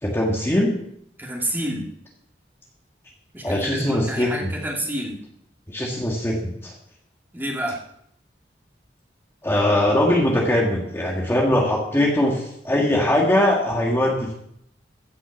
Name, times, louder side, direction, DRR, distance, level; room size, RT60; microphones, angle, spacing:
voice 1, 0.0-0.7 3.4-4.5 5.7-6.7 9.4-14.3, left 1 dB, 15° left, -2 dB, 1.7 m, -21 dB
voice 2, 1.2-1.9 3.3-5.2 7.3-7.8, right 1 dB, 10° right, -1 dB, 2.3 m, -28 dB
15.0 x 6.0 x 7.0 m, 0.73 s
head